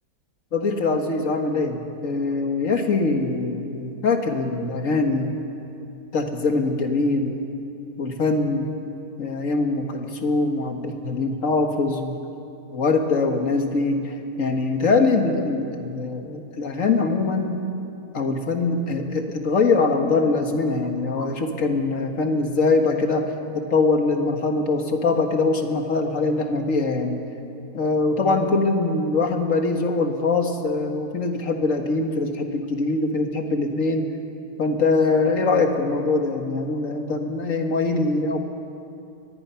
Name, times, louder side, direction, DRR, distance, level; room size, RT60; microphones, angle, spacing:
voice 1, 0.5-5.4 6.1-7.5 8.0-8.7 9.2-12.2 12.7-17.6 18.1-23.2 23.5-27.2 27.7-34.1 34.6-38.4, left 3 dB, 55° left, 4 dB, 2.0 m, -23 dB
24.0 x 19.5 x 5.8 m, 2.8 s
omnidirectional pair, 1.7 m